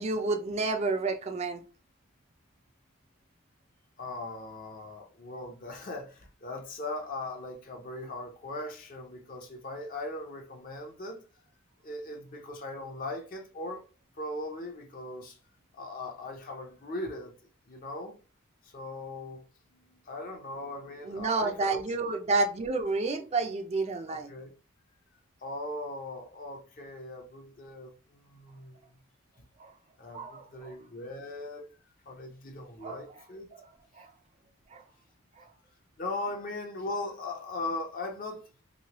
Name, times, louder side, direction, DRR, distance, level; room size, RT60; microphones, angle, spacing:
voice 1, 0.0-1.6 21.0-24.3 29.6-29.7 30.1-30.8 32.8-33.0 33.5-34.1 34.7-34.8 35.4-35.5, right 3 dB, 30° right, 0.4 m, -30 dB
voice 2, 4.0-11.2 11.8-13.8 14.2-15.4 15.8-17.3 17.7-18.2 18.6-19.4 20.1-22.2 24.1-24.5 25.4-28.8 30.0-31.7 32.1-33.5 36.0-38.5, left 2 dB, 40° left, 0.5 m, -39 dB
3.1 x 2.8 x 2.9 m
head